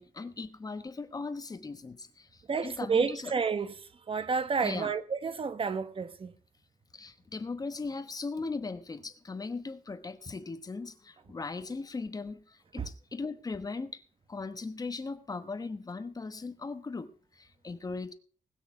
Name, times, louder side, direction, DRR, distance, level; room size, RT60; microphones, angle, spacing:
voice 1, 0.0-3.3 4.6-4.9 6.9-14.0 14.3-18.1, left 3 dB, 30° left, 1.1 m, -38 dB
voice 2, 2.5-3.7 4.1-6.3 12.8-12.9, right 5 dB, 40° right, 1.0 m, -30 dB
20.0 x 6.6 x 6.0 m
wide cardioid pair, 160°, 13 cm